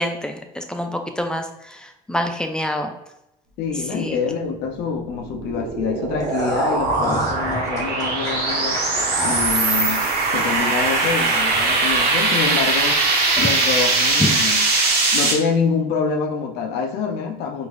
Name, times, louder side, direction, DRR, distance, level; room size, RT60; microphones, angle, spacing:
voice 1, 0.0-2.9 3.9-4.2, equal, 5° left, 5 dB, 0.4 m, -27 dB
voice 2, 3.6-8.8 9.2-10.1 10.3-13.0 13.4-14.7 15.1-17.7, left 5 dB, 80° left, 4 dB, 0.6 m, -25 dB
sound 1, 4.8-15.3, right 3 dB, 75° right, 1.0 m, -21 dB
sound 2, 6.2-12.5 12.8-12.9 13.4-13.5, left 1 dB, 20° left, 0.9 m, -32 dB
4.7 x 2.5 x 2.4 m, 0.88 s
cardioid pair, 110°, 17 cm